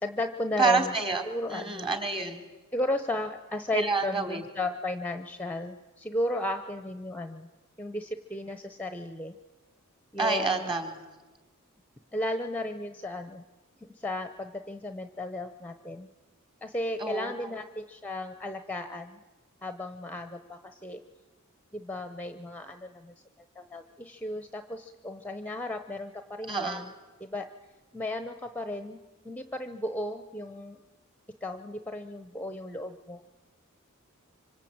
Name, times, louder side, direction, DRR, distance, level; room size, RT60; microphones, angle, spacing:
voice 1, 0.0-0.9 1.3-1.9 2.7-7.5 7.8-9.4 10.1-10.7 12.1-13.4 13.9-16.1 16.6-19.2 19.6-21.0 21.7-23.1 23.6-26.9 27.2-27.5 27.9-29.0 29.2-30.8 31.4-33.2, left 1 dB, 5° left, 8 dB, 0.9 m, -34 dB
voice 2, 0.6-1.2 1.5-2.4 3.7-4.4 10.2-11.0 17.0-17.5 26.5-26.9, right 4 dB, 25° right, 5 dB, 3.5 m, -28 dB
26.0 x 25.0 x 8.8 m, 1.2 s
head